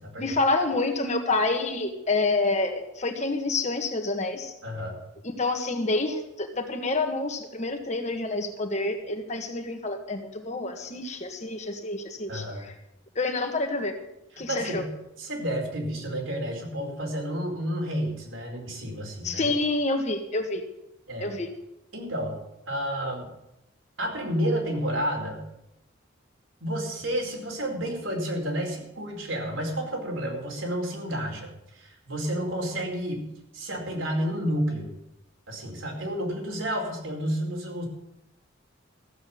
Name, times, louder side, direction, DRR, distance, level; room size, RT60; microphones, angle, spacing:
voice 1, 0.2-4.5 5.2-12.7 13.1-13.9 14.4-14.8 19.2-20.6 21.2-21.5, left 2 dB, 35° left, 5 dB, 1.5 m, -28 dB
voice 2, 4.6-5.0 12.3-12.7 14.4-14.9 15.2-19.5 21.1-21.3 21.9-22.4 22.7-23.3 24.0-25.4 26.6-34.9 35.5-37.8, equal, 75° right, 0 dB, 4.6 m, -30 dB
15.0 x 7.7 x 8.6 m, 0.86 s
head